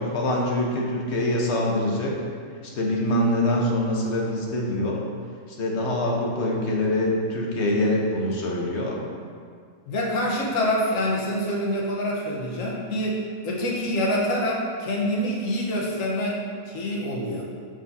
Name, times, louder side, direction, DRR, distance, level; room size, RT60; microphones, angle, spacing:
voice 1, 0.0-2.1 2.6-5.0 5.5-9.0, left 1 dB, 60° left, -2 dB, 1.2 m, -24 dB
voice 2, 9.9-16.4 16.7-17.4, left 1 dB, 80° left, -3 dB, 1.5 m, -26 dB
7.0 x 6.1 x 2.7 m, 2.1 s
omnidirectional pair, 1.4 m